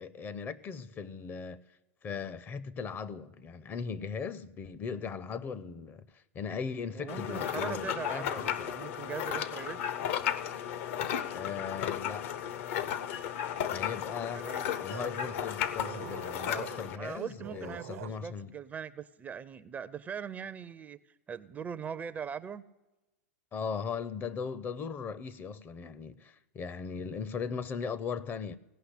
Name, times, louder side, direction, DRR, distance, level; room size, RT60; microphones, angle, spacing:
voice 1, 0.0-1.6 2.0-8.7 11.3-12.3 13.7-14.5 14.8-18.5 23.5-28.6, left 6 dB, 25° left, 0.6 m, -38 dB
voice 2, 6.9-9.8 14.3-14.7 17.0-22.6, right 7 dB, 20° right, 0.4 m, -41 dB
sound 1, 7.1-17.0, left 10 dB, 60° left, 0.8 m, -34 dB
sound 2, 14.9-18.2, right 13 dB, 65° right, 0.6 m, -46 dB
17.0 x 5.7 x 9.9 m
hypercardioid pair, 110°, 8 cm